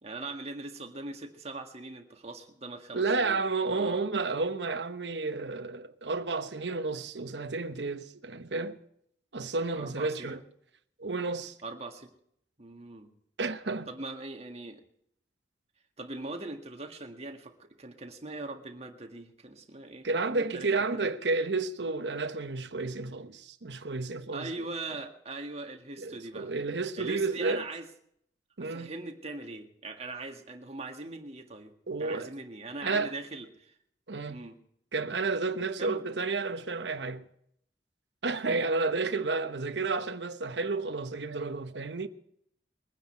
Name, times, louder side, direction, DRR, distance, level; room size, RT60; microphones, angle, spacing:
voice 1, 0.0-3.4 3.7-4.1 9.8-10.4 11.6-12.1 12.6-13.1 13.9-14.8 16.0-21.1 24.3-26.5 27.0-27.9 28.6-31.7 32.0-33.8 34.3-34.6 35.8-36.0, right 2 dB, 35° right, 1.8 m, -41 dB
voice 2, 2.9-8.8 9.3-10.4 11.0-11.5 13.4-13.9 20.0-24.5 26.0-27.6 28.6-28.9 31.9-32.3 32.8-33.1 34.1-34.4 34.9-37.3 38.2-42.1, right 3 dB, 80° right, 1.0 m, -31 dB
22.0 x 9.7 x 4.5 m
head